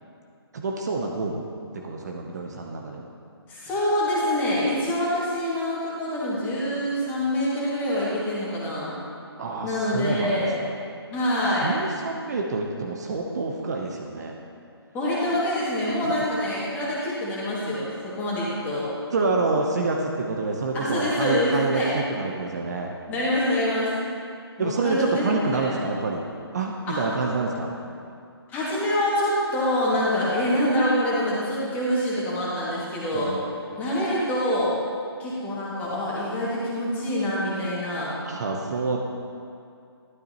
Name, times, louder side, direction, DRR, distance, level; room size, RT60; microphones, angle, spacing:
voice 1, 0.5-1.4 1.7-3.0 9.4-10.8 11.6-14.3 19.1-23.0 24.6-26.2 26.5-27.7 33.1-33.4 38.2-39.0, right 3 dB, 40° right, 1 dB, 0.9 m, -27 dB
voice 2, 3.5-8.9 9.6-10.6 11.1-11.7 14.9-18.9 20.7-21.9 23.1-23.9 24.6-25.7 26.8-27.0 28.5-33.4 33.8-34.7 35.2-38.1, left 1 dB, 10° left, -7 dB, 2.2 m, -25 dB
13.0 x 12.0 x 3.0 m, 2.4 s
figure-of-eight pair, 150°, 14 cm